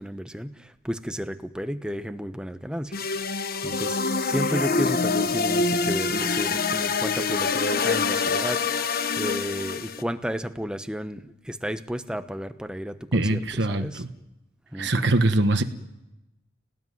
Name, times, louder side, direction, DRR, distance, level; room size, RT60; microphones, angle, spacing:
voice 1, 0.0-3.1 3.6-4.0 4.2-8.6 9.2-14.0 14.7-15.1, equal, 5° right, 9 dB, 1.1 m, -32 dB
sound 1, 2.9-10.0, left 4 dB, 50° left, 1.2 m, -25 dB
voice 2, 13.1-14.1 14.8-15.6, right 2 dB, 60° right, 8 dB, 1.3 m, -23 dB
29.0 x 19.0 x 9.5 m, 0.99 s
head